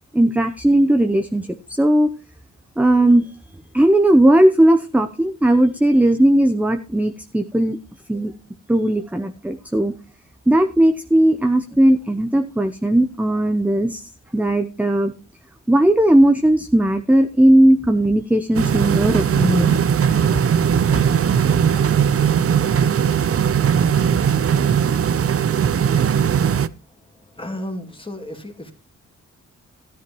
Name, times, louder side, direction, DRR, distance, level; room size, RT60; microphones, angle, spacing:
voice 1, 0.1-1.5 1.8-2.1 2.8-3.2 3.7-7.8 8.1-8.3 8.7-9.9 10.5-14.0 14.3-15.1 15.7-19.8 20.9-21.0, right 1 dB, 5° right, 7 dB, 0.7 m, -17 dB
sound 1, 18.5-26.7, right 8 dB, 50° right, 0.6 m, -18 dB
voice 2, 27.4-28.7, left 1 dB, 15° left, 4 dB, 2.4 m, -32 dB
13.5 x 10.5 x 3.1 m, 0.33 s
cardioid pair, 85°, 30 cm